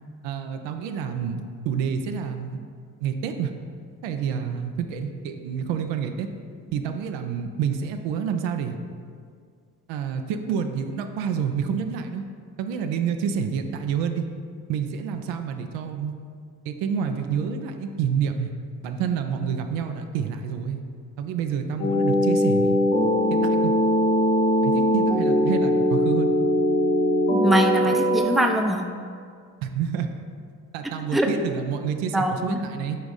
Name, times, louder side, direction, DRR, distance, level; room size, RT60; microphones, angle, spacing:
voice 1, 0.2-1.4 1.6-2.6 3.0-3.5 4.0-6.3 6.7-8.8 9.9-12.2 12.6-14.3 14.7-16.1 16.6-18.5 18.8-20.8 21.2-22.8 23.3-23.7 24.6-26.3 29.6-30.1 30.7-33.0, right 7 dB, 70° right, 6 dB, 0.6 m, -28 dB
sound 1, 21.8-28.2, equal, 70° left, 1.1 m, -21 dB
voice 2, 27.3-28.8 31.1-31.3 32.1-32.6, right 1 dB, ahead, 3 dB, 0.6 m, -22 dB
8.2 x 3.5 x 4.0 m, 2.2 s
hypercardioid pair, 40°, 47 cm